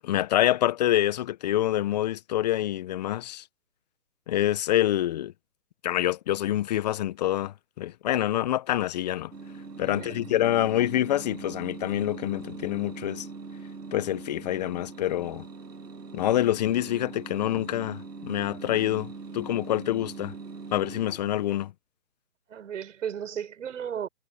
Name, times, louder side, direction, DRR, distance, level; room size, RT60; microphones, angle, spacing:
voice 1, 0.0-3.4 4.3-5.3 5.8-9.3 9.8-13.3 13.9-15.4 16.1-20.3 20.7-21.7, left 13 dB, 25° left, 1.3 m, -26 dB
sound 1, 9.3-21.7, right 4 dB, 80° right, 2.9 m, -42 dB
voice 2, 9.9-10.2 22.5-24.1, right 8 dB, 50° right, 7.2 m, -35 dB
figure-of-eight pair, 150°, 48 cm